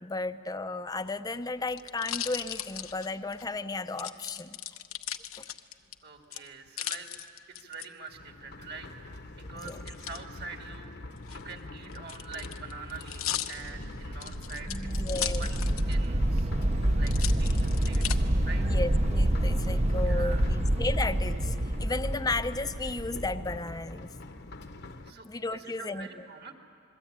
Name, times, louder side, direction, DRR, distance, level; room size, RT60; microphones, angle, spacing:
voice 1, 0.0-4.6 9.5-9.8 14.7-15.5 18.6-24.1 25.2-26.1, left 3 dB, 20° left, 11 dB, 0.6 m, -34 dB
sound 1, 0.9-3.5 4.0-5.9 6.3-7.9 9.7-10.2 11.2-16.1 16.4-16.5 17.0-18.2 18.8-19.3, left 12 dB, 85° left, 0.9 m, -37 dB
voice 2, 6.0-7.1 7.5-8.9 9.3-10.9 11.3-15.6 15.9-16.5 16.8-18.8 20.0-20.5 25.0-26.5, right 4 dB, 50° right, 4 dB, 2.3 m, -45 dB
sound 2, 8.1-25.1, left 2 dB, 55° left, 1.0 m, -44 dB
sound 3, 13.6-23.6, right 1 dB, 30° right, 0.7 m, -27 dB
27.5 x 21.5 x 8.8 m, 2.3 s
head